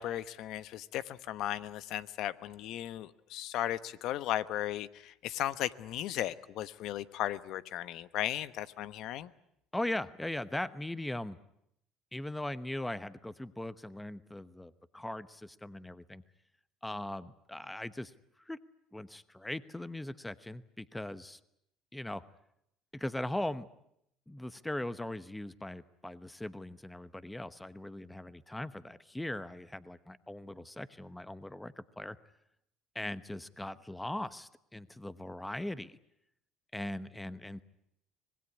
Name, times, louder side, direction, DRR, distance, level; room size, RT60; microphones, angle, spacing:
voice 1, 0.0-9.3, left 12 dB, 70° left, 15 dB, 1.0 m, -36 dB
voice 2, 9.7-11.4 12.1-16.2 16.8-18.1 18.4-18.6 18.9-21.4 21.9-22.2 22.9-23.7 24.3-32.2 32.9-36.0 36.7-37.6, left 1 dB, 10° left, 14 dB, 1.0 m, -39 dB
25.5 x 20.0 x 9.6 m, 0.77 s
supercardioid pair, 95°, 0 cm